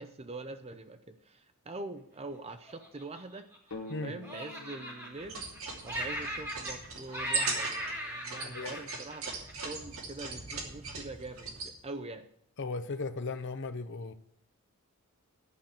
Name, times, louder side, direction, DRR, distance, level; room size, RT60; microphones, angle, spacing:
voice 1, 0.0-3.5 4.0-5.4 5.8-12.3, right 2 dB, 30° right, 0.6 m, -44 dB
Laughter, 2.7-3.9 4.2-5.6 5.8-6.9 7.1-9.7, equal, 10° right, 3.1 m, -38 dB
sound 1, 3.7-7.4, left 3 dB, 70° left, 1.4 m, -49 dB
sound 2, 5.2-11.7, right 4 dB, 70° right, 2.7 m, -39 dB
voice 2, 8.4-8.9 12.6-14.1, left 3 dB, 55° left, 0.7 m, -37 dB
11.5 x 5.8 x 8.9 m
head